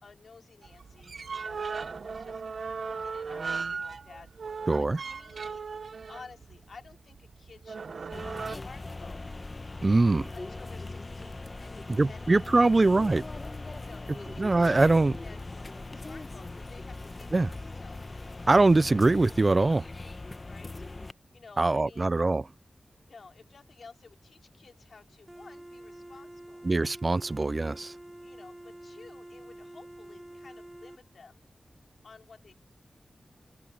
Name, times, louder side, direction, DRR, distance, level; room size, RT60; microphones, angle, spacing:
voice 1, 0.0-2.4 2.8-4.3 4.7-5.6 6.1-9.4 10.3-12.9 13.8-14.9 15.2-15.4 15.9-17.5 17.8-18.0 18.7-18.8 20.5-20.8 21.3-22.1 23.1-26.7 28.2-31.4 32.0-32.5, left 4 dB, 70° left, 3.0 m, -53 dB
sound 1, 0.6-8.6, right 5 dB, 75° right, 0.9 m, -37 dB
voice 2, 4.7-5.0 9.8-10.3 11.9-13.2 14.4-15.1 17.3-17.5 18.5-19.8 21.6-22.4 26.6-27.9, right 2 dB, 35° right, 0.4 m, -23 dB
sound 2, 8.1-21.1, left 2 dB, 30° left, 0.9 m, -40 dB
sound 3, 25.3-31.0, right 1 dB, 15° right, 6.3 m, -47 dB
wide cardioid pair, 115°, 0 cm